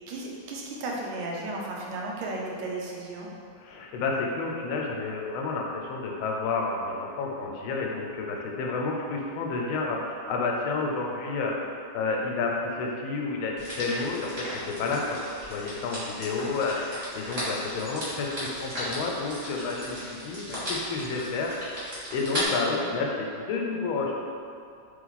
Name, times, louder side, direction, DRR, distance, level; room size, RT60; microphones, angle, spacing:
voice 1, 0.1-3.3 22.8-23.0, right 2 dB, 90° right, -2 dB, 1.5 m, -34 dB
voice 2, 3.6-15.2 15.5-24.1, left 3 dB, 85° left, 0 dB, 1.4 m, -30 dB
sound 1, 13.6-22.5, equal, 25° right, 0.9 m, -36 dB
3.4 x 3.1 x 4.0 m, 2.4 s
omnidirectional pair, 2.2 m